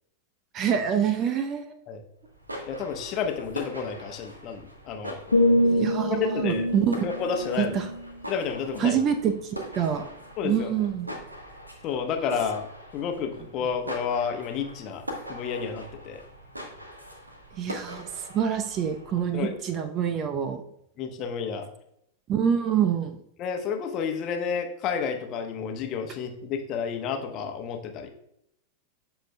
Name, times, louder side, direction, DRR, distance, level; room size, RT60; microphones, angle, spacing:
voice 1, 0.5-1.8 5.6-7.1 7.6-7.9 8.8-10.1 10.4-11.1 17.5-20.6 22.3-23.2, right 8 dB, 35° right, 8 dB, 0.6 m, -26 dB
sound 1, 2.2-19.6, equal, 85° right, 1.2 m, -42 dB
voice 2, 2.7-5.4 6.2-6.7 7.0-7.8 8.3-9.0 10.4-10.7 11.8-12.7 12.9-15.0 15.3-16.2 19.3-19.6 21.0-21.7 23.4-28.1, left 6 dB, 35° left, 5 dB, 1.0 m, -30 dB
sound 2, 5.3-9.2 9.7-10.0, left 1 dB, 75° left, 0.6 m, -26 dB
13.0 x 4.5 x 2.2 m, 0.75 s
figure-of-eight pair, 90°, 0 cm